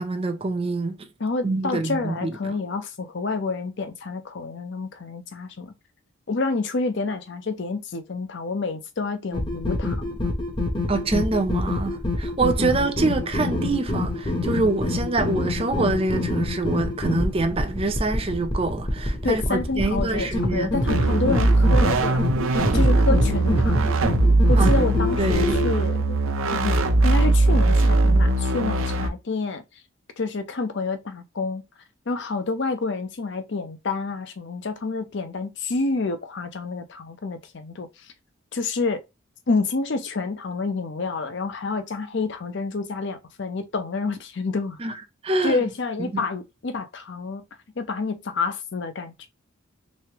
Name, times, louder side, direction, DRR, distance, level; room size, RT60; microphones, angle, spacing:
voice 1, 0.0-1.1 1.4-2.3 10.9-20.7 24.6-24.8 25.2-25.6 44.8-44.9 45.2-45.6 46.0-46.3, right 3 dB, 25° right, 0.5 m, -25 dB
voice 2, 1.2-5.7 6.3-10.2 19.2-22.2 22.5-23.9 24.5-26.2 26.5-29.6 30.2-31.6 32.1-37.9 38.5-39.0 39.5-44.8 45.4-47.4 47.8-49.3, left 3 dB, 55° left, 0.6 m, -28 dB
sound 1, 9.3-25.7, left 2 dB, 25° left, 0.7 m, -27 dB
sound 2, 20.9-29.1, right 2 dB, 75° right, 0.6 m, -20 dB
3.4 x 3.1 x 2.9 m
head